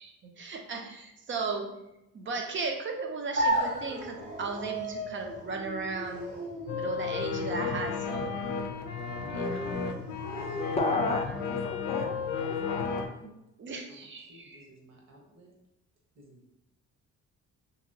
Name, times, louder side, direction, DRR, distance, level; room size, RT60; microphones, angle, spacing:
voice 1, 0.0-1.7 2.1-6.4 6.8-8.4 9.3-9.9 13.6-14.7, right 4 dB, 40° right, 3 dB, 0.6 m, -36 dB
sound 1, 3.3-11.3, right 1 dB, 90° right, 1.3 m, -35 dB
sound 2, 6.7-13.1, left 6 dB, 80° left, 0.5 m, -33 dB
voice 2, 10.7-13.0, left 2 dB, 20° left, 3 dB, 0.5 m, -32 dB
voice 3, 13.9-15.5 16.2-16.5, right 1 dB, 60° right, -1 dB, 1.0 m, -55 dB
2.9 x 2.8 x 2.6 m, 0.89 s
cardioid pair, 90°, 30 cm